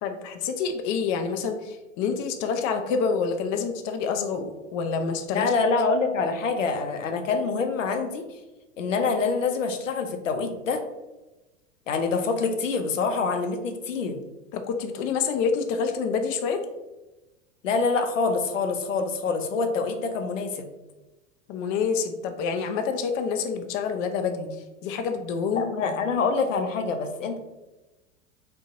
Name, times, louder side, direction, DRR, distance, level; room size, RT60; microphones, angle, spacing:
voice 1, 0.0-5.5 14.5-16.6 21.5-24.5 24.8-25.7, left 5 dB, 35° left, 6 dB, 0.4 m, -27 dB
voice 2, 5.3-8.2 8.8-10.8 11.9-14.2 17.6-20.7 25.6-27.4, left 4 dB, 85° left, 6 dB, 0.6 m, -26 dB
3.8 x 2.3 x 3.6 m, 1.1 s
figure-of-eight pair, 85°, 37 cm